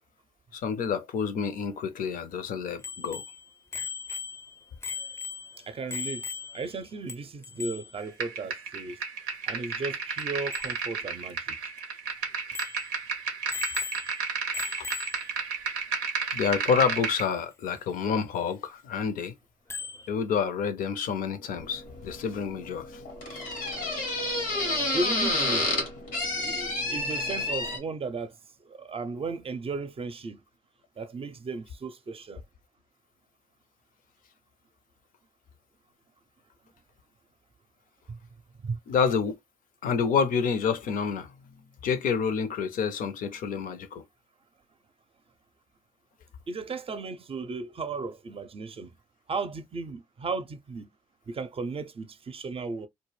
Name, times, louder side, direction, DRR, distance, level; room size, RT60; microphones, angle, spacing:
voice 1, 0.5-3.2 14.6-14.9 16.3-19.3 20.1-23.0 38.9-39.4 39.8-41.3 41.8-44.0, left 6 dB, 65° left, 0.5 m, -28 dB
Bicycle bell, 2.8-6.8 7.1-7.2 7.4-8.0 10.2-10.3 10.5-10.7 11.3-11.4 11.8-11.9 12.5-12.9 13.5-14.2 14.5-15.3 17.2-17.3 19.7-20.1, left 6 dB, 15° left, 0.5 m, -37 dB
voice 2, 5.7-9.0 9.5-11.6 24.9-25.7 26.3-28.4 28.6-30.4 31.0-32.4 38.1-38.2 38.6-38.8 46.5-49.0 49.3-50.9 51.3-52.9, right 4 dB, 40° right, 0.5 m, -35 dB
sound 1, 8.2-17.2, right 5 dB, 90° right, 0.5 m, -32 dB
sound 2, 21.5-27.8, left 2 dB, 90° left, 0.8 m, -30 dB
2.1 x 2.1 x 3.1 m
hypercardioid pair, 40°, 15 cm